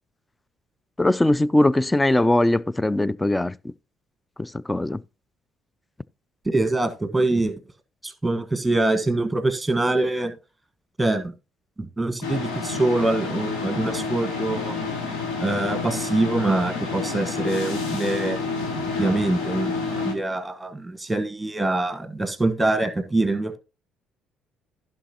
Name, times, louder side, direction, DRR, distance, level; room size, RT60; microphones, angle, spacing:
voice 1, 1.0-3.5 4.4-5.0, left 1 dB, 10° left, 0.4 m, -20 dB
voice 2, 6.4-7.5 8.0-10.3 11.0-11.3 11.8-14.8 15.4-18.4 19.0-23.6, right 2 dB, 10° right, 1.4 m, -24 dB
sound 1, 12.2-20.1, left 4 dB, 70° left, 2.0 m, -29 dB
15.0 x 5.8 x 2.9 m
figure-of-eight pair, 50°, 0 cm